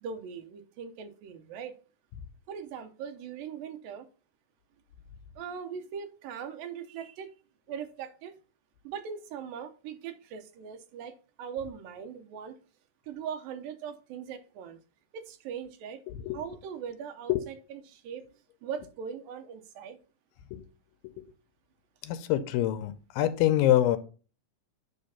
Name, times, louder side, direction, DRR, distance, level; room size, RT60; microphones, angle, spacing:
voice 1, 0.0-1.8 2.5-4.1 5.4-7.3 7.7-8.4 8.8-12.6 13.1-14.8 15.1-16.0 16.3-18.2 18.6-20.0, right 7 dB, 90° right, 2.6 m, -40 dB
voice 2, 16.1-16.4 17.3-17.4 20.5-20.6 21.0-21.2 22.0-24.0, left 13 dB, 85° left, 2.4 m, -26 dB
9.6 x 3.4 x 5.7 m
omnidirectional pair, 4.0 m